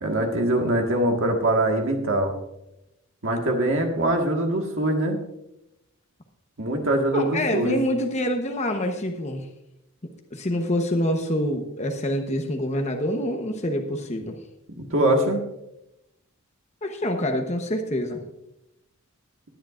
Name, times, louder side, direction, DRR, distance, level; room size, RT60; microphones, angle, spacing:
voice 1, 0.0-2.3 3.2-5.2 6.6-7.8 14.8-15.4, right 1 dB, 60° right, 2 dB, 1.7 m, -23 dB
voice 2, 7.1-9.5 10.3-14.4 16.8-18.2, left 1 dB, 30° left, 3 dB, 1.0 m, -26 dB
19.5 x 10.0 x 2.5 m, 0.86 s
head